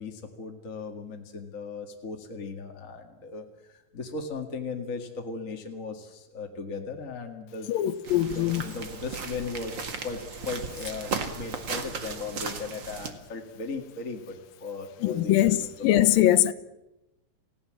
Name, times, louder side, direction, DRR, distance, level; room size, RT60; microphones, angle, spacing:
voice 1, 0.0-7.7 8.1-15.7, left 4 dB, 35° left, 1.5 m, -37 dB
voice 2, 7.7-8.6 15.0-15.6 15.8-16.5, left 13 dB, 75° left, 2.7 m, -22 dB
sound 1, 8.0-13.1, right 5 dB, 40° right, 1.9 m, -36 dB
29.0 x 17.0 x 7.6 m
omnidirectional pair, 4.2 m